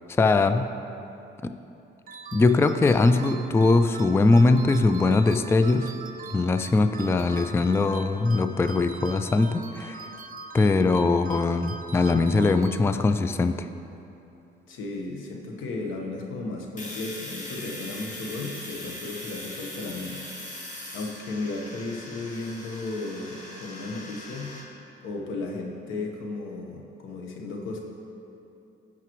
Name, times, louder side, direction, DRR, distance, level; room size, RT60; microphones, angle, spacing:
voice 1, 0.2-0.7 2.3-5.9 6.3-10.1 10.5-13.7, left 3 dB, 10° left, 9 dB, 0.3 m, -21 dB
sound 1, 2.1-13.3, right 4 dB, 45° right, 0.7 m, -42 dB
voice 2, 14.7-20.2 20.9-24.5 25.0-27.8, left 3 dB, 85° left, 1 dB, 1.2 m, -34 dB
Domestic sounds home sounds, 16.8-24.6, left 1 dB, 40° left, 2.0 m, -40 dB
16.5 x 5.9 x 3.1 m, 2.8 s
cardioid pair, 90°, 20 cm